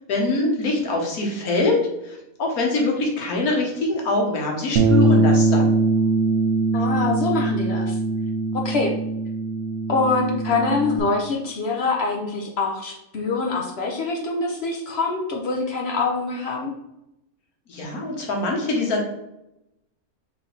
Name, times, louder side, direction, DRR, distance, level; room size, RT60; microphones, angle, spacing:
voice 1, 0.1-1.8 2.0-5.8 17.7-19.0, left 2 dB, 85° left, 0 dB, 1.6 m, -23 dB
Bass guitar, 4.8-11.0, right 2 dB, 65° right, 0.8 m, -21 dB
voice 2, 6.7-8.0 8.5-8.9 9.9-16.7, left 3 dB, 55° left, 1 dB, 0.8 m, -24 dB
3.8 x 3.3 x 3.9 m, 0.86 s
omnidirectional pair, 1.5 m